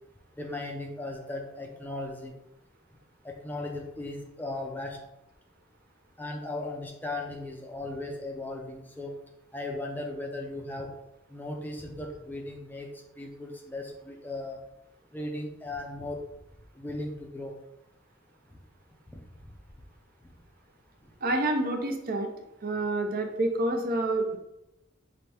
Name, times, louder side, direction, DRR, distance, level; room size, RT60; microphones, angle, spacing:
voice 1, 0.4-2.3 3.2-5.0 6.2-9.1 9.5-10.9 11.3-12.9 13.2-14.6 15.1-16.2 16.7-17.5 19.1-19.2, left 2 dB, 10° left, 1 dB, 0.5 m, -37 dB
voice 2, 21.2-22.3 22.6-24.4, right 2 dB, 50° right, 4 dB, 0.6 m, -28 dB
5.7 x 2.6 x 3.3 m, 0.88 s
head